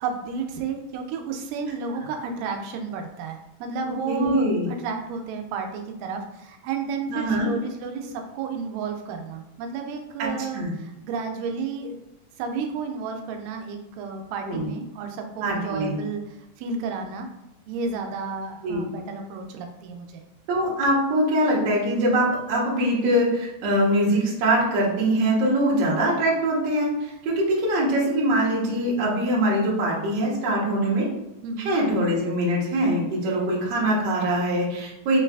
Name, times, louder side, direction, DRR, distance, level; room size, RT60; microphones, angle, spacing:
voice 1, 0.0-12.0 12.4-17.3 17.7-20.2 31.4-31.7, right 5 dB, 90° right, 4 dB, 2.2 m, -32 dB
voice 2, 4.1-4.7 7.1-7.5 10.2-10.3 10.5-10.7 14.5-14.7 15.4-15.9 18.6-18.8 20.5-31.1 31.7-35.2, right 1 dB, 60° right, -4 dB, 2.1 m, -23 dB
5.3 x 3.1 x 2.3 m, 0.95 s
omnidirectional pair, 3.8 m